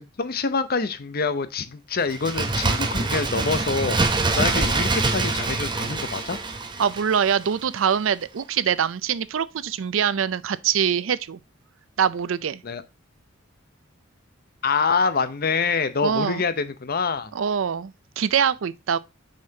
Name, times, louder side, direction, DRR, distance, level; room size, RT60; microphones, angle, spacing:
voice 1, 0.0-6.4 12.6-12.8 14.6-17.3, left 4 dB, 50° left, 0.7 m, -26 dB
Bird, 2.1-7.6 7.9-8.0, right 3 dB, 25° right, 0.7 m, -25 dB
voice 2, 6.8-11.4 12.0-12.6 16.0-16.4 17.3-19.0, right 7 dB, 70° right, 0.4 m, -24 dB
6.5 x 5.5 x 2.7 m
head